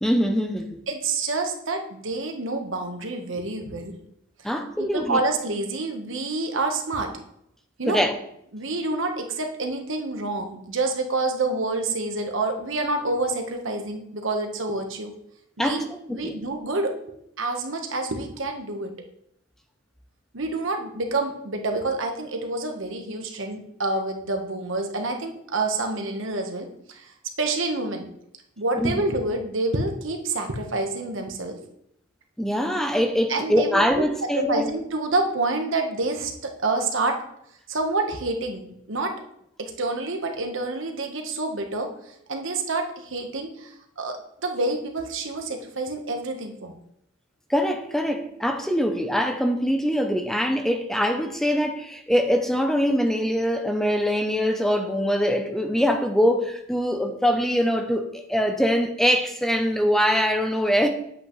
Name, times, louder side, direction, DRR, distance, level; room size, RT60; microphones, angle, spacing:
voice 1, 0.0-0.8 4.4-5.2 7.9-8.1 15.6-16.4 28.7-29.0 32.4-34.7 47.5-60.9, equal, ahead, 0.5 m, -23 dB
voice 2, 0.9-3.9 4.8-7.1 7.8-8.0 8.5-15.1 15.6-16.9 17.4-18.9 20.3-28.1 28.6-31.6 33.3-34.0 34.3-37.2 37.7-39.1 39.6-41.9 42.3-46.8, right 2 dB, 70° right, 1.2 m, -28 dB
8.2 x 8.1 x 3.1 m
head